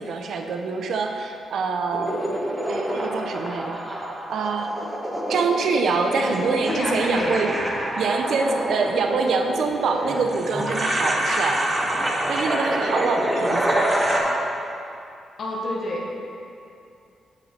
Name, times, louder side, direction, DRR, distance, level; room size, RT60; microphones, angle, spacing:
voice 1, 0.0-2.1 2.7-3.8 4.3-4.7 5.3-7.5 8.0-11.6 12.3-13.9, right 4 dB, 70° right, 4 dB, 0.7 m, -25 dB
sound 1, 1.9-14.2, right 1 dB, 25° right, 1.4 m, -26 dB
voice 2, 6.0-7.4 15.4-16.2, left 1 dB, 60° left, -3 dB, 1.2 m, -29 dB
7.4 x 6.5 x 4.4 m, 2.6 s
cardioid pair, 70°, 0 cm